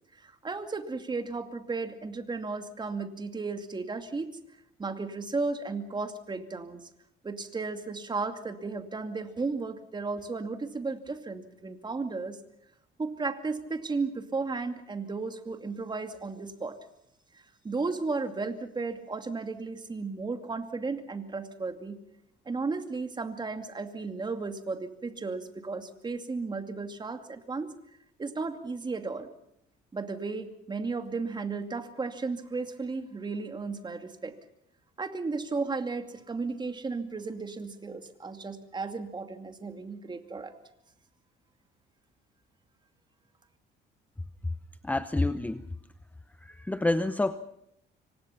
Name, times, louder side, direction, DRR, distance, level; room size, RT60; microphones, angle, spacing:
voice 1, 0.2-4.4 4.8-6.8 7.2-12.4 13.0-16.8 17.3-22.0 22.5-27.7 28.2-29.3 29.9-34.4 35.0-40.5, right 4 dB, 20° right, 7 dB, 2.4 m, -34 dB
voice 2, 44.8-45.6 46.4-47.4, left 2 dB, 10° left, 12 dB, 0.8 m, -28 dB
26.5 x 24.5 x 5.8 m, 0.77 s
cardioid pair, 120°, 20 cm